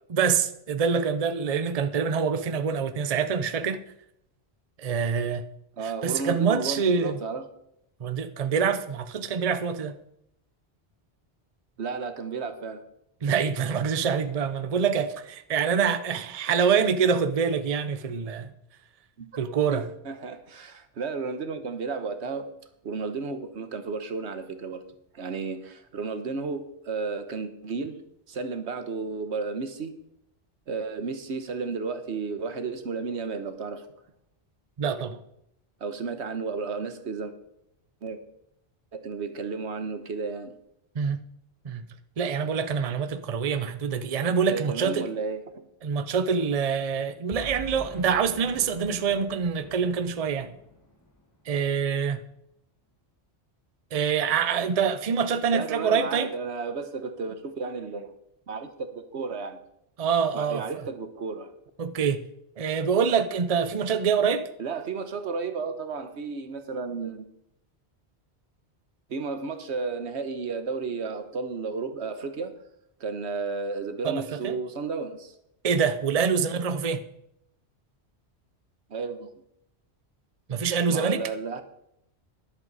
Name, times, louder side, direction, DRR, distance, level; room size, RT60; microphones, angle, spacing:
voice 1, 0.1-3.8 4.8-5.5 5.8-7.2 8.0-9.9 13.2-18.5 19.4-19.8 34.8-35.2 40.9-41.2 41.6-41.9 42.2-45.0 45.8-50.5 51.5-52.2 53.9-56.3 60.0-60.6 61.8-62.2 62.6-64.4 74.0-74.6 75.6-77.0 80.5-81.2, right 6 dB, 40° right, 0.7 m, -25 dB
voice 2, 5.8-7.5 11.8-12.8 19.2-19.3 19.7-22.5 22.8-24.8 25.1-28.0 28.3-29.9 30.7-33.9 35.8-37.3 38.0-38.2 38.9-40.6 44.5-45.6 55.5-58.1 58.5-59.6 60.3-61.5 64.6-67.3 69.1-72.5 73.0-75.3 78.9-79.3 80.9-81.6, right 4 dB, 85° right, 1.4 m, -33 dB
Boom, 47.3-51.7, left 2 dB, 15° left, 1.4 m, -45 dB
12.5 x 11.0 x 4.1 m
omnidirectional pair, 1.1 m